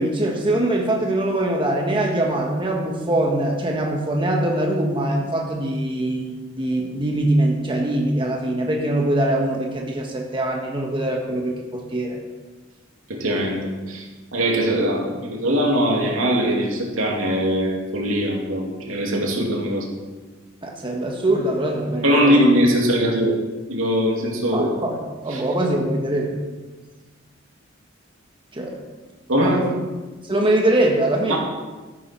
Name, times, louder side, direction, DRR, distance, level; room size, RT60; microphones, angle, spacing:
voice 1, 0.0-12.2 20.6-22.5 24.5-26.4 28.5-28.8 29.4-29.6 30.2-31.4, right 1 dB, 25° right, 1 dB, 1.4 m, -23 dB
voice 2, 13.1-13.6 13.9-14.1 14.3-19.9 22.0-23.4 23.7-24.7 25.3-25.4 29.3-29.7 31.3-31.4, equal, 85° right, -1 dB, 2.8 m, -21 dB
13.0 x 11.5 x 4.5 m, 1.3 s
head